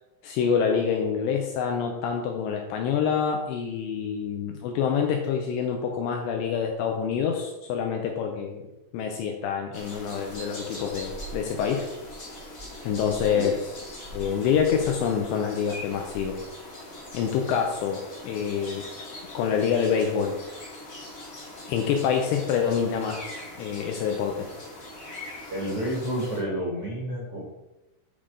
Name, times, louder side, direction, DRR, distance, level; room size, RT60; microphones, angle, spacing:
voice 1, 0.2-8.6 8.9-11.9 12.8-13.8 14.1-16.4 17.1-18.9 19.3-20.4 21.7-24.5, left 7 dB, 90° left, 3 dB, 2.6 m, -26 dB
sound 1, 9.7-26.4, left 1 dB, 65° left, 0.8 m, -41 dB
voice 2, 25.5-27.4, equal, 85° right, -4 dB, 1.3 m, -30 dB
10.5 x 3.7 x 4.9 m, 0.99 s
omnidirectional pair, 5.7 m